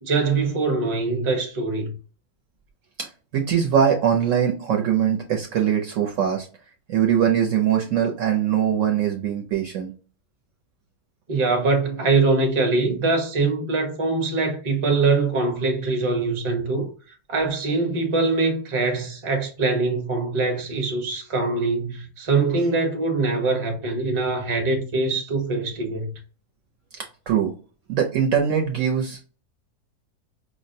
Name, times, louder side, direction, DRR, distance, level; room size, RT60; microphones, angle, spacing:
voice 1, 0.0-1.9 11.3-16.9 17.3-26.1, right 3 dB, 25° right, 0.7 m, -23 dB
voice 2, 3.0-6.5 6.9-9.9 27.3-27.5 27.9-29.3, right 8 dB, 65° right, 0.8 m, -22 dB
5.1 x 2.1 x 2.6 m
omnidirectional pair, 1.7 m